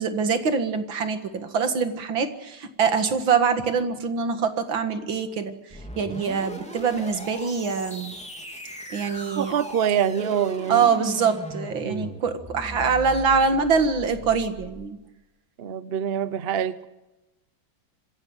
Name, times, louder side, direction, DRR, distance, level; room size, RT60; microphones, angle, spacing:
voice 1, 0.0-8.1 8.9-9.5 10.7-15.0, right 5 dB, 85° right, 8 dB, 2.6 m, -24 dB
sound 1, 5.7-14.9, equal, 5° left, 2.7 m, -38 dB
voice 2, 9.4-10.9 11.8-12.1 15.6-16.9, right 9 dB, 50° right, 15 dB, 0.7 m, -25 dB
26.0 x 16.0 x 7.9 m, 1.0 s
omnidirectional pair, 2.1 m